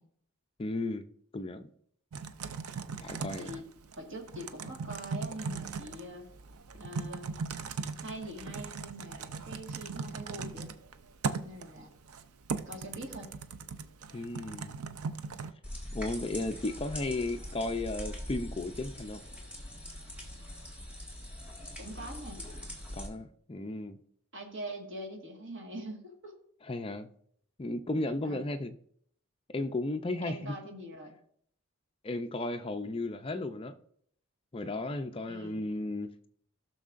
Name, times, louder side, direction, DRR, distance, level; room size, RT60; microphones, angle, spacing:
voice 1, 0.6-1.0 1.3-1.7 3.0-3.6 14.1-14.7 15.9-19.2 22.9-24.0 26.6-27.1 27.6-28.7 29.5-30.5 32.0-33.7 34.5-36.3, left 2 dB, 25° left, 0.4 m, -34 dB
Typing, 2.1-15.5, right 5 dB, 80° right, 0.6 m, -39 dB
voice 2, 4.0-6.3 6.8-7.3 8.0-10.7 11.4-11.9 12.6-13.3 21.8-22.4 24.3-26.4 28.2-28.4 30.2-31.1 35.2-35.6, right 1 dB, 55° right, 1.7 m, -43 dB
sound 1, 15.6-23.1, left 1 dB, 5° right, 1.7 m, -42 dB
16.0 x 6.3 x 2.5 m
head